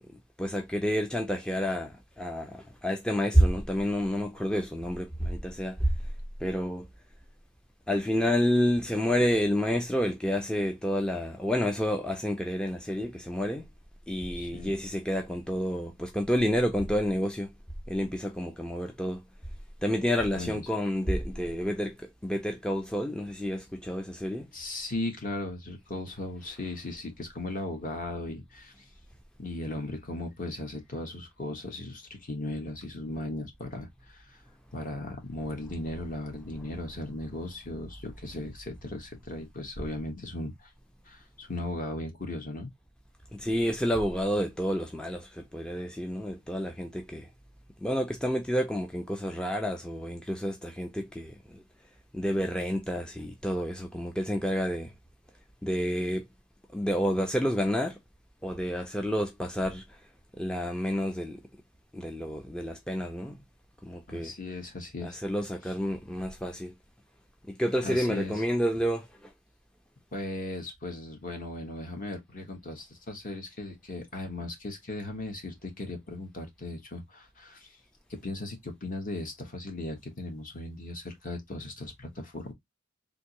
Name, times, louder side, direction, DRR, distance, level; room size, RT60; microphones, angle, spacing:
voice 1, 0.4-5.9 6.4-6.9 7.9-13.7 14.1-17.5 17.9-19.2 19.8-24.5 43.3-47.3 47.8-51.6 52.1-54.9 55.6-56.3 56.7-58.0 58.4-60.0 60.4-61.4 61.9-63.4 63.8-64.3 65.0-66.7 67.5-69.3, equal, 5° left, 0.4 m, -29 dB
voice 2, 14.3-14.7 20.4-20.7 24.5-28.7 29.4-34.4 34.7-40.7 41.1-42.7 64.1-65.2 67.8-68.3 70.1-77.7 78.2-82.5, left 2 dB, 40° left, 1.2 m, -37 dB
3.5 x 2.6 x 2.8 m
head